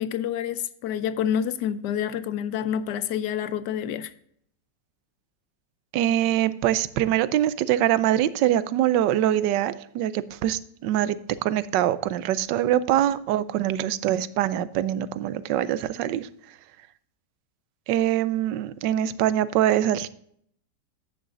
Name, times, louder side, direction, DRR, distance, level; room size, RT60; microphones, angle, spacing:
voice 1, 0.0-4.1, left 9 dB, 75° left, 1.2 m, -28 dB
voice 2, 5.9-16.3 17.9-20.1, right 12 dB, 85° right, 1.3 m, -24 dB
9.9 x 9.7 x 2.5 m
omnidirectional pair, 1.9 m